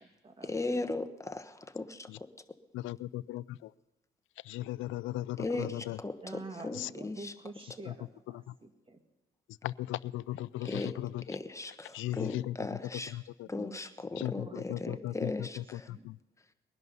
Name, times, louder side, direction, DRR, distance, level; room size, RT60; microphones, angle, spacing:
voice 1, 0.4-2.1 5.4-7.3 10.6-11.0 11.3-13.2 13.5-15.9, left 2 dB, 15° left, 8 dB, 1.2 m, -37 dB
voice 2, 2.7-3.7 4.5-6.0 6.7-6.9 7.9-8.0 8.3-8.4 9.6-11.2 11.9-12.5 13.1-13.5 14.2-15.3 15.9-16.2, left 15 dB, 80° left, 19 dB, 0.4 m, -37 dB
voice 3, 6.2-9.0 13.6-13.9 14.3-14.6 14.8-15.5 15.9-16.1, right 2 dB, 25° right, 6 dB, 2.1 m, -47 dB
21.5 x 11.0 x 5.5 m, 1.0 s
cardioid pair, 90°, 20 cm